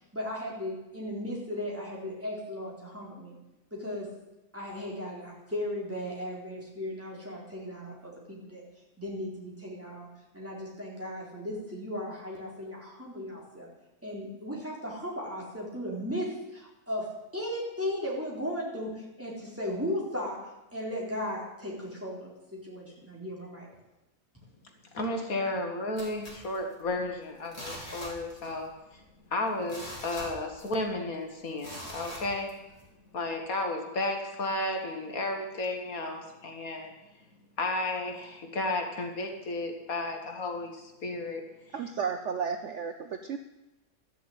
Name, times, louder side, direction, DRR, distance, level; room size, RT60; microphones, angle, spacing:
voice 1, 0.1-3.4 3.7-4.1 4.5-8.6 9.0-10.1 10.3-13.7 14.0-20.4 20.7-23.7, left 1 dB, 10° right, -4 dB, 3.9 m, -36 dB
voice 2, 24.9-29.0 29.3-32.5 33.1-36.9 37.6-41.4 41.7-41.9, left 2 dB, 65° left, 3 dB, 2.1 m, -33 dB
sound 1, 26.0-27.1 27.4-28.7 28.9-29.0 29.5-30.9 31.6-32.8 33.3-33.4, equal, 25° left, 4.1 m, -42 dB
voice 3, 41.7-43.4, right 6 dB, 60° right, 7 dB, 1.0 m, -33 dB
13.0 x 7.1 x 9.0 m, 0.98 s
omnidirectional pair, 1.6 m